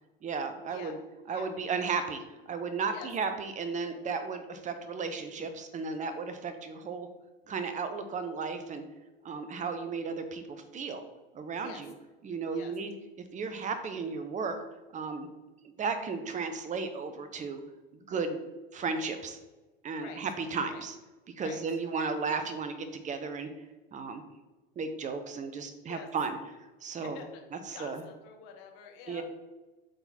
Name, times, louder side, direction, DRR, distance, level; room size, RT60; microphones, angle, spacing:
voice 1, 0.2-1.0 1.3-2.2 2.5-7.1 7.5-8.8 9.2-11.0 11.3-11.9 12.2-12.9 13.3-14.6 14.9-15.3 15.6-17.6 18.1-18.4 18.7-19.4 19.8-21.0 21.4-23.5 23.9-24.2 24.8-26.4 26.8-27.2 27.5-28.0 29.1-29.2, right 4 dB, 25° right, 9 dB, 0.9 m, -34 dB
voice 2, 27.0-27.4 27.7-29.2, left 8 dB, 50° left, 3 dB, 1.4 m, -47 dB
7.9 x 4.0 x 4.3 m, 1.1 s
figure-of-eight pair, 85°, 29 cm